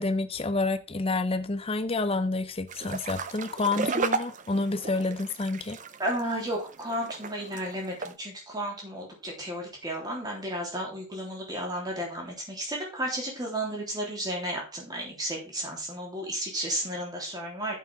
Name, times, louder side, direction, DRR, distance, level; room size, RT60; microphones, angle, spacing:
voice 1, 0.0-5.8, left 3 dB, 25° left, 11 dB, 0.6 m, -29 dB
sound 1, 2.7-8.1, right 4 dB, 35° right, 0.6 m, -34 dB
voice 2, 6.0-17.8, right 1 dB, 20° right, -1 dB, 3.3 m, -33 dB
11.0 x 7.6 x 3.5 m, 0.29 s
head